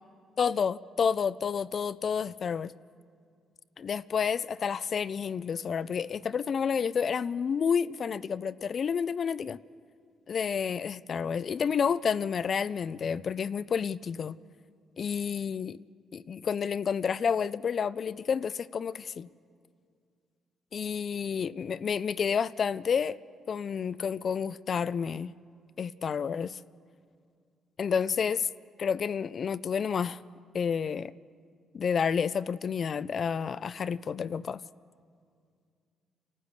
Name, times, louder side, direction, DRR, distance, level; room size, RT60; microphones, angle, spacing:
voice 1, 0.4-2.7 3.8-9.6 10.3-14.3 15.0-15.8 16.1-19.3 20.7-23.2 23.5-25.3 25.8-26.6 27.8-28.5 28.8-30.2 30.5-31.1 31.7-34.6, left 6 dB, 50° left, 0.4 m, -30 dB
28.0 x 13.0 x 8.2 m
cardioid pair, 90°, 0 cm